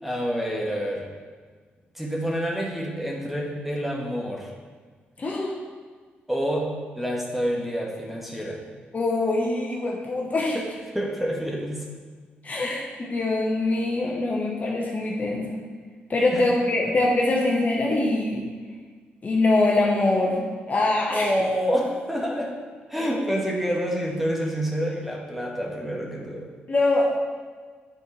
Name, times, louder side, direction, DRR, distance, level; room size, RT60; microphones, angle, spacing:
voice 1, 0.0-1.1 1.9-4.5 6.3-8.6 10.5-10.6 10.9-11.8 12.6-12.7 16.3-16.4 21.1-22.5 22.9-26.5, equal, 5° right, -2 dB, 1.4 m, -27 dB
voice 2, 5.2-5.5 8.9-10.6 12.4-15.5 16.1-18.4 19.2-21.3 26.7-27.2, left 2 dB, 40° left, -2 dB, 1.1 m, -23 dB
8.5 x 4.4 x 3.3 m, 1.5 s
cardioid pair, 70°, 4 cm